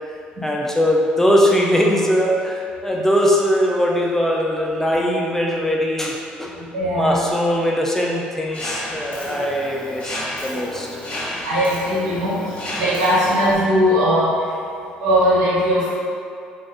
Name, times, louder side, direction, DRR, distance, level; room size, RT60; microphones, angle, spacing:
voice 1, 0.4-6.5 6.9-10.9, equal, 10° left, -2 dB, 0.4 m, -20 dB
voice 2, 6.5-7.2 11.3-14.6 15.0-16.0, equal, 75° right, -9 dB, 1.3 m, -20 dB
Mechanisms, 8.5-13.5, left 1 dB, 30° left, 1.0 m, -31 dB
2.4 x 2.3 x 4.0 m, 2.5 s
supercardioid pair, 70°, 4 cm